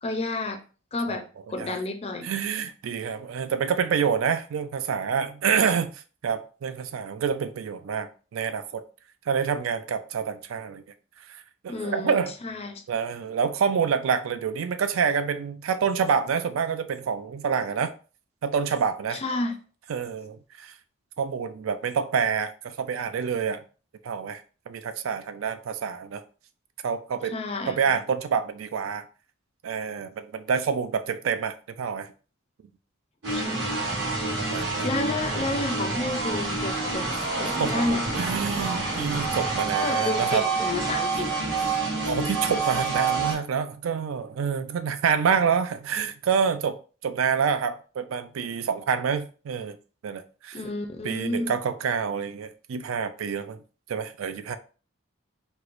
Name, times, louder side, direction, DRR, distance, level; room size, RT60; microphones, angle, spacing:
voice 1, 0.0-0.6 0.9-2.3 11.7-12.8 19.1-19.6 27.3-27.8 33.3-33.7 34.8-37.1 37.4-38.3 39.8-41.3 50.5-51.5, left 2 dB, 30° left, 0.4 m, -30 dB
voice 2, 2.2-8.8 9.3-10.8 11.3-11.4 11.6-12.3 12.9-17.9 18.4-19.2 19.9-20.7 21.2-23.6 24.0-26.2 26.8-27.3 27.7-29.1 29.6-32.1 34.4-34.9 37.6-37.8 38.1-40.4 42.1-46.8 47.0-49.8 50.0-50.6 51.0-53.6 53.9-54.6, right 6 dB, 85° right, 0.4 m, -27 dB
sound 1, 33.2-43.4, right 3 dB, 60° right, 1.6 m, -28 dB
4.5 x 2.1 x 2.5 m
head